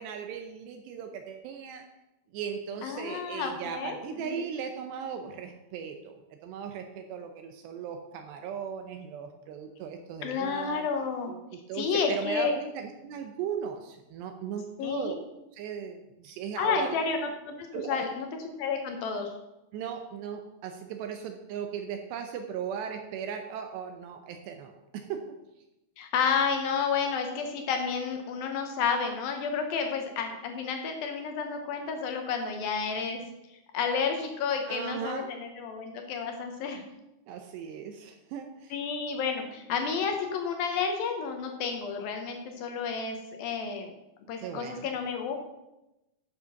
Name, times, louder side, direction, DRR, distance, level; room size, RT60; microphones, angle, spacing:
voice 1, 0.0-1.8 2.3-6.1 6.4-10.9 11.3-15.2 15.5-17.0 17.7-18.0 19.7-25.2 34.7-35.3 37.3-38.7 44.4-44.9, right 7 dB, 80° right, 5 dB, 2.7 m, -37 dB
voice 2, 2.8-4.0 4.2-4.4 10.2-11.3 11.7-12.5 14.8-15.1 16.6-19.3 26.0-33.2 33.7-36.8 38.7-44.0 44.3-45.4, left 5 dB, 75° left, 4 dB, 2.2 m, -31 dB
11.0 x 6.7 x 5.7 m, 0.93 s
omnidirectional pair, 5.5 m